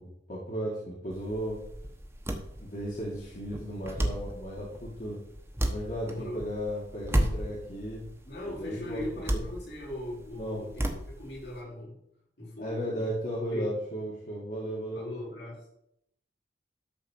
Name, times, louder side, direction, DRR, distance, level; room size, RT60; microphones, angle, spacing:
voice 1, 0.0-1.6 2.6-5.2 5.7-8.0 8.5-9.0 9.3-9.4 10.4-10.6 12.6-15.1, equal, 45° left, -5 dB, 2.3 m, -35 dB
sound 1, 1.1-11.6, right 1 dB, 15° right, 1.1 m, -34 dB
voice 2, 6.0-6.4 8.2-12.0 12.4-13.1 13.5-13.8 14.9-15.7, left 1 dB, 70° left, -4 dB, 5.1 m, -39 dB
12.5 x 4.3 x 7.5 m, 0.77 s
head